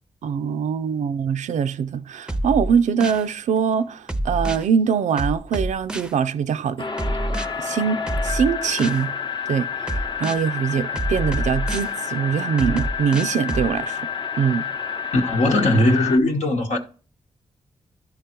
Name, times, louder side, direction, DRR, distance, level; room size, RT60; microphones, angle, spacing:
voice 1, 0.2-6.9 7.6-9.1 9.5-9.7 10.2-14.1 14.4-14.7, right 7 dB, 85° right, 0.4 m, -23 dB
sound 1, 2.3-3.3 4.1-4.7 5.2-6.1 7.0-7.5 8.1-9.0 9.9-10.4 11.0-11.9 12.6-13.7, right 1 dB, 5° right, 0.5 m, -27 dB
sound 2, 6.8-16.2, left 7 dB, 40° left, 0.8 m, -29 dB
voice 2, 15.1-16.8, left 1 dB, 75° left, 1.0 m, -19 dB
11.0 x 3.7 x 4.4 m
cardioid pair, 45°, 12 cm